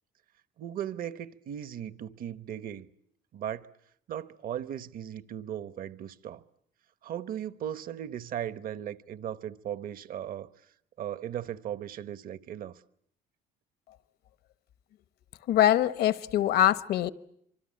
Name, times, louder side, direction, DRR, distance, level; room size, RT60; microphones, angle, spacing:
voice 1, 0.6-2.9 3.3-3.7 4.1-6.4 7.0-10.5 11.0-12.8, right 10 dB, 60° right, 1.0 m, -37 dB
voice 2, 15.5-17.1, left 12 dB, 70° left, 1.0 m, -23 dB
25.5 x 24.5 x 8.6 m
cardioid pair, 110°, 17 cm